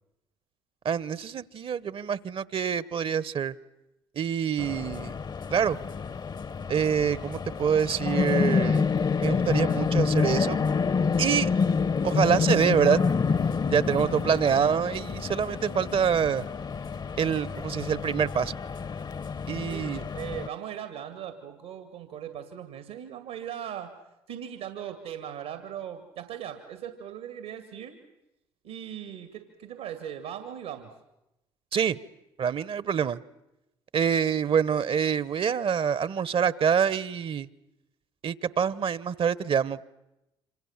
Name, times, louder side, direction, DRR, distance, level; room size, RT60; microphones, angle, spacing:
voice 1, 0.8-3.5 4.1-5.1 5.5-5.8 6.7-8.9 9.2-10.6 11.2-11.5 12.0-13.0 13.7-16.5 17.2-18.5 19.5-20.0 31.7-32.0 32.4-33.2 33.9-37.5 38.2-39.8, right 7 dB, 50° right, 18 dB, 1.0 m, -26 dB
sound 1, 4.6-20.5, left 5 dB, 35° left, 0.9 m, -28 dB
voice 2, 13.9-14.7 19.7-23.9 24.3-28.0 28.6-30.9, right 10 dB, 80° right, 7 dB, 2.2 m, -39 dB
27.0 x 26.0 x 7.4 m, 0.92 s
hypercardioid pair, 55°, 12 cm